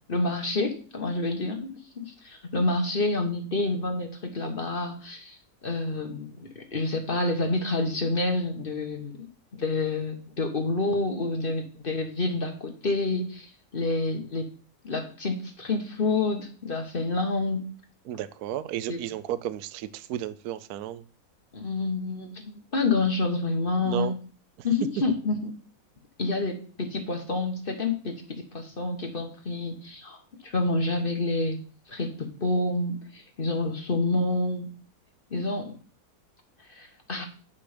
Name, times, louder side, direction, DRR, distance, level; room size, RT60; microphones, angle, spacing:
voice 1, 0.1-1.7 2.0-5.4 5.6-9.3 9.5-14.5 14.8-17.7 18.9-19.0 21.5-24.1 24.6-25.5 26.2-30.2 30.4-34.7 35.3-35.8 36.7-37.2, left 2 dB, 35° left, 4 dB, 1.1 m, -28 dB
voice 2, 18.1-21.0 23.8-24.1, right 11 dB, 70° right, 14 dB, 1.0 m, -33 dB
8.4 x 5.7 x 5.0 m, 0.41 s
omnidirectional pair, 1.9 m